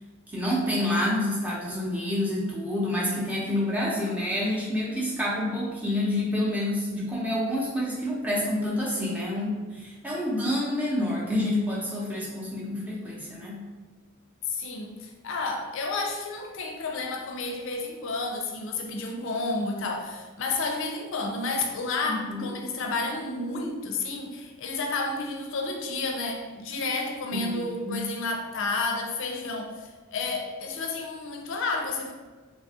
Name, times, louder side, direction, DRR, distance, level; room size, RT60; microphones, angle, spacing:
voice 1, 0.3-13.7 22.0-22.5 27.3-28.1, left 1 dB, 5° right, -6 dB, 0.6 m, -28 dB
voice 2, 14.5-32.1, left 3 dB, 60° left, 2 dB, 0.4 m, -31 dB
3.1 x 2.2 x 2.7 m, 1.4 s
head